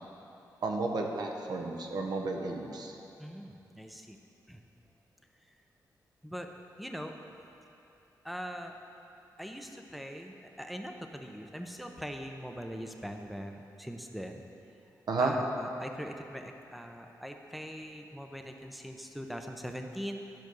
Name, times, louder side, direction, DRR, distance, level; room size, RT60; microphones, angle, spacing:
voice 1, 0.6-2.9 15.1-15.3, right 3 dB, 65° right, 2 dB, 1.0 m, -32 dB
voice 2, 3.2-4.2 4.5-4.6 6.2-6.5 6.8-7.1 8.2-8.7 9.4-14.4 15.2-20.2, equal, ahead, 4 dB, 0.7 m, -41 dB
10.5 x 5.2 x 6.3 m, 2.8 s
cardioid pair, 85°, 7 cm